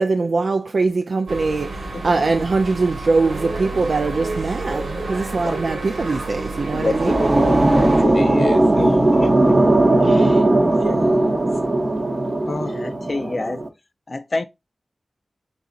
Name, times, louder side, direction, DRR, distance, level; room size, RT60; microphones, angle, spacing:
voice 1, 0.0-7.2, right 3 dB, 70° right, 0.3 m, -22 dB
sound 1, 1.3-8.0, right 2 dB, 90° right, 1.3 m, -29 dB
voice 2, 1.9-2.3 5.4-5.6 6.7-9.6 10.0-11.5 12.5-12.9, left 3 dB, 65° left, 0.8 m, -29 dB
sound 2, 6.5-13.7, right 2 dB, 35° right, 0.7 m, -18 dB
voice 3, 12.6-13.6 14.1-14.4, left 2 dB, 45° left, 0.4 m, -27 dB
4.0 x 3.9 x 2.4 m
wide cardioid pair, 95°, 0 cm